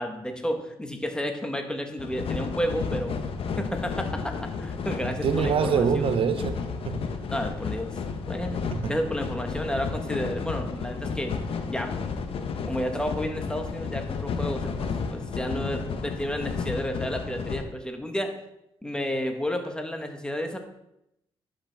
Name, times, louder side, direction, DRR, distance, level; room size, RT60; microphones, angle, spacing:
voice 1, 0.0-3.1 3.6-6.1 7.3-7.9 8.3-11.4 11.7-11.9 12.7-18.3 18.8-20.6, equal, 10° left, 1.1 m, -31 dB
sound 1, 2.0-17.6, left 5 dB, 65° left, 0.8 m, -32 dB
voice 2, 5.2-7.1 8.7-9.0, right 7 dB, 65° right, 0.5 m, -25 dB
11.0 x 5.1 x 3.3 m
cardioid pair, 85°, 10 cm